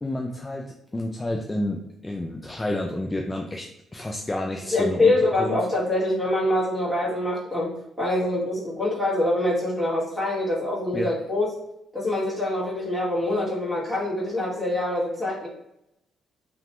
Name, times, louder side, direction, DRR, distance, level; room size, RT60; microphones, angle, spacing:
voice 1, 0.0-5.6 10.9-11.1, left 1 dB, 20° left, 1 dB, 0.3 m, -30 dB
voice 2, 4.7-11.5 11.9-15.5, left 1 dB, 5° right, -7 dB, 1.5 m, -25 dB
2.9 x 2.2 x 2.9 m, 0.81 s
cardioid pair, 90°, 0 cm